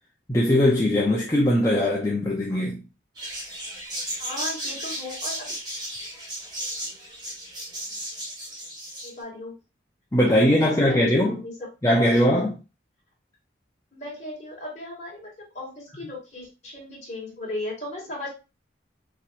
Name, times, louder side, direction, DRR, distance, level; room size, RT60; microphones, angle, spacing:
voice 1, 0.3-2.9 10.1-11.4 11.8-12.6, left 1 dB, 15° left, 0.7 m, -20 dB
sound 1, 3.1-9.1, right 1 dB, 25° right, 1.4 m, -34 dB
voice 2, 4.2-5.5 9.0-9.6 10.3-12.0 13.9-18.3, left 1 dB, 35° left, 2.5 m, -36 dB
5.9 x 3.1 x 2.6 m
head